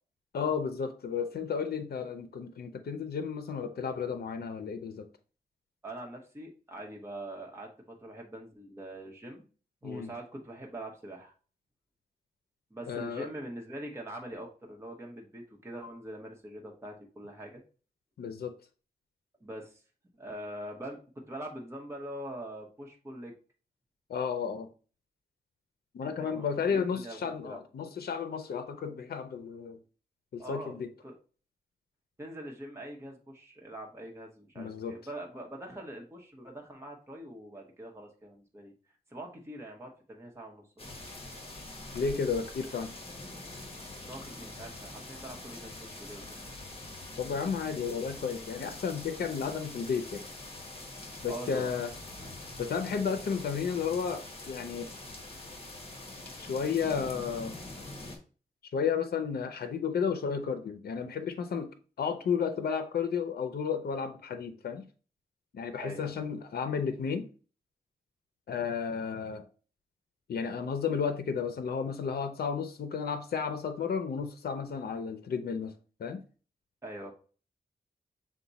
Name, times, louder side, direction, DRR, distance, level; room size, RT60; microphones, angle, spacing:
voice 1, 0.3-5.1 9.8-10.1 12.9-13.3 18.2-18.5 24.1-24.7 25.9-29.8 30.3-30.9 34.6-35.0 41.9-42.9 47.2-50.3 51.2-51.9 52.6-54.9 56.4-57.6 58.7-61.7 62.0-64.9 65.5-67.3 68.5-69.4 70.3-75.7 76.0-76.2, left 6 dB, 80° left, 0.5 m, -32 dB
voice 2, 5.8-9.5 9.8-11.3 12.7-17.6 19.4-19.8 20.1-23.3 26.0-27.6 30.4-30.8 31.0-31.1 32.2-38.7 39.1-41.1 44.0-46.5 51.3-51.7 65.8-66.1 76.8-77.1, right 1 dB, 15° right, 1.0 m, -43 dB
sound 1, 40.8-58.2, left 2 dB, 35° left, 1.3 m, -44 dB
5.9 x 2.2 x 4.0 m
wide cardioid pair, 110°, 16 cm